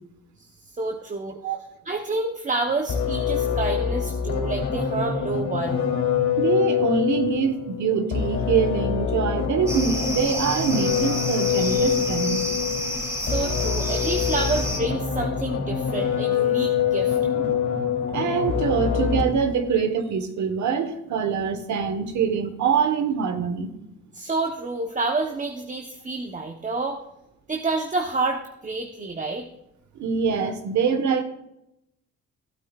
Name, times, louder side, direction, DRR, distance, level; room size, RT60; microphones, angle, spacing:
voice 1, 0.4-1.4 1.8-5.8 13.2-17.2 24.1-27.0 27.5-29.5, right 3 dB, 25° right, 5 dB, 0.9 m, -29 dB
sound 1, 2.9-19.5, left 7 dB, 60° left, 3.0 m, -25 dB
voice 2, 6.4-12.4 17.3-17.6 18.1-23.7 29.9-31.2, right 6 dB, 70° right, 7 dB, 1.4 m, -24 dB
sound 2, 9.7-14.8, left 1 dB, 10° right, 2.8 m, -30 dB
16.0 x 8.9 x 2.4 m, 0.84 s
cardioid pair, 90°, 30 cm